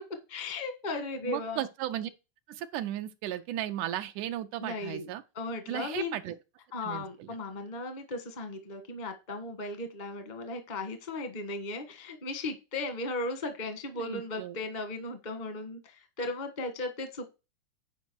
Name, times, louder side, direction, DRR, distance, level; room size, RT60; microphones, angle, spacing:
voice 1, 0.3-1.7 4.6-5.1 5.3-6.2 6.7-17.3, left 2 dB, 40° left, 0.6 m, -36 dB
voice 2, 1.3-2.1 2.5-5.2 5.7-6.4 6.8-7.3 14.0-14.6, right 12 dB, 85° right, 2.1 m, -35 dB
9.4 x 5.1 x 4.6 m
omnidirectional pair, 3.5 m